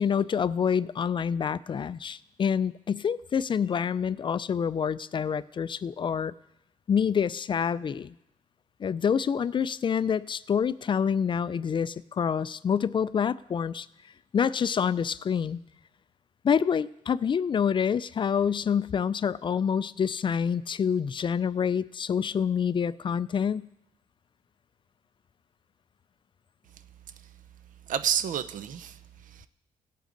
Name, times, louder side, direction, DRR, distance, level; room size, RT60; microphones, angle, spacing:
voice 1, 0.0-6.3 6.9-8.1 8.8-13.9 14.3-15.6 16.4-23.7, left 7 dB, 35° left, 18 dB, 0.4 m, -27 dB
voice 2, 27.9-29.5, right 9 dB, 70° right, 13 dB, 0.7 m, -30 dB
17.5 x 8.2 x 3.9 m, 0.84 s
cardioid pair, 100°, 14 cm